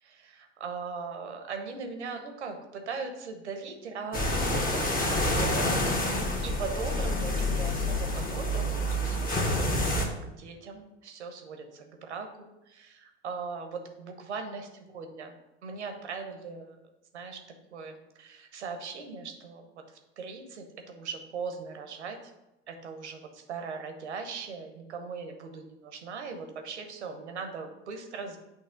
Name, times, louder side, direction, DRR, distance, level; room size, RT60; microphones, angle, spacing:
voice 1, 0.0-5.8 6.4-15.3 15.6-16.8 17.1-17.4 17.7-19.8 20.2-22.2 22.7-28.4, right 5 dB, 85° right, 5 dB, 0.9 m, -39 dB
sound 1, 4.1-10.1, left 1 dB, 25° left, 1.4 m, -28 dB
8.3 x 3.0 x 5.1 m, 0.94 s
hypercardioid pair, 70°, 33 cm